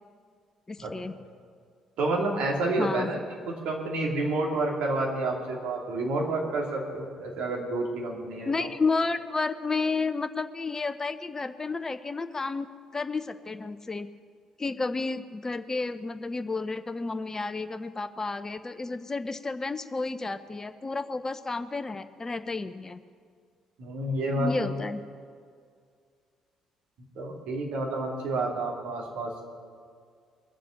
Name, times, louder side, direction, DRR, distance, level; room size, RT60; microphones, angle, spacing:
voice 1, 0.7-1.1 2.8-3.1 8.4-14.1 14.6-23.0 24.3-25.0, left 3 dB, 25° left, 10 dB, 0.7 m, -31 dB
voice 2, 2.0-3.2 3.5-8.7 23.8-24.7 27.1-29.3, right 2 dB, 60° right, -1 dB, 2.8 m, -29 dB
21.5 x 7.6 x 7.2 m, 2.1 s
figure-of-eight pair, 45°, 2 cm